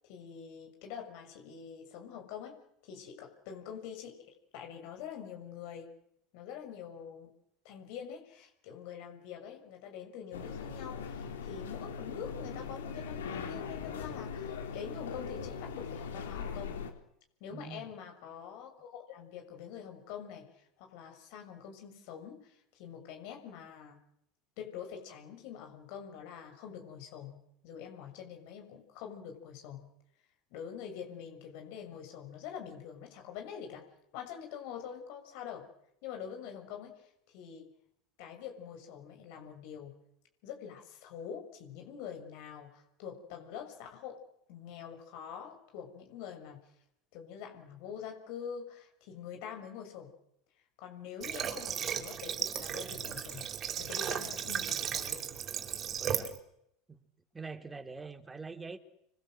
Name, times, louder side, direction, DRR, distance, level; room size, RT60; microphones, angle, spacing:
voice 1, 0.0-5.9 6.3-7.3 7.6-16.8 17.4-24.0 24.6-27.4 27.6-29.9 30.5-33.8 34.1-35.7 36.0-37.7 38.2-39.9 40.4-44.2 44.5-46.6 47.1-50.1 50.8-53.4 53.8-55.2, left 8 dB, 65° left, 4 dB, 6.8 m, -45 dB
sound 1, 10.3-16.9, left 6 dB, 85° left, 3.7 m, -40 dB
voice 2, 17.5-17.8 56.0-56.4 56.9-57.0 57.3-58.8, right 4 dB, 15° right, 7 dB, 3.2 m, -44 dB
Water / Water tap faucet, 51.2-56.4, right 9 dB, 40° right, 3.6 m, -35 dB
28.5 x 25.0 x 7.9 m, 0.76 s
hypercardioid pair, 90°, 0 cm